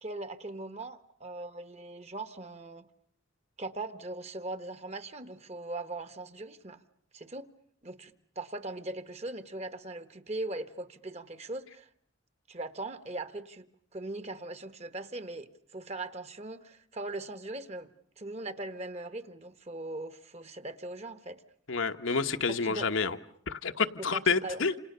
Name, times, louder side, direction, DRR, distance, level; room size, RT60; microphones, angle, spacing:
voice 1, 0.0-2.9 3.6-6.8 7.1-7.5 7.8-11.9 12.5-13.7 13.9-21.4 22.6-22.9 24.0-24.7, right 2 dB, 30° right, 11 dB, 1.3 m, -40 dB
voice 2, 21.7-23.2 23.5-24.7, left 4 dB, 70° left, 7 dB, 1.1 m, -29 dB
28.5 x 28.0 x 6.8 m, 0.64 s
head